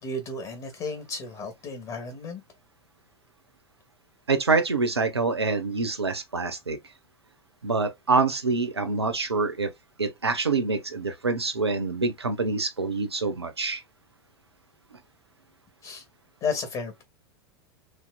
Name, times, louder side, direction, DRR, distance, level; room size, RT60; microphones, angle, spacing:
voice 1, 0.0-2.4 15.8-16.0 16.4-17.0, left 3 dB, 35° left, 2.1 m, -33 dB
voice 2, 4.3-6.8 7.6-9.7 10.0-13.8, right 4 dB, 85° right, 1.0 m, -26 dB
6.5 x 3.0 x 2.4 m
figure-of-eight pair, 90°, 13 cm